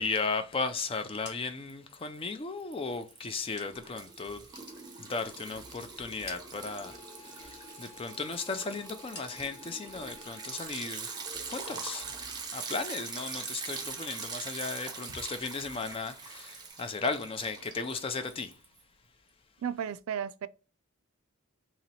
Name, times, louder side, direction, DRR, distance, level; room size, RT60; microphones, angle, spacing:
voice 1, 0.0-11.2 11.4-12.1 12.5-18.6, left 4 dB, 25° left, 0.3 m, -36 dB
sound 1, 1.1-4.0 4.4-5.7 6.0-7.3 7.6-9.8 10.2-10.6 11.0-12.3 12.5-13.2 13.4-16.3, left 3 dB, 50° left, 1.1 m, -54 dB
Liquid, 1.7-2.3 2.6-18.8, right 5 dB, 20° right, 0.6 m, -43 dB
sound 2, 6.6-16.7, left 4 dB, 5° left, 0.9 m, -57 dB
voice 2, 19.6-20.5, right 8 dB, 75° right, 0.3 m, -34 dB
2.9 x 2.8 x 4.1 m
head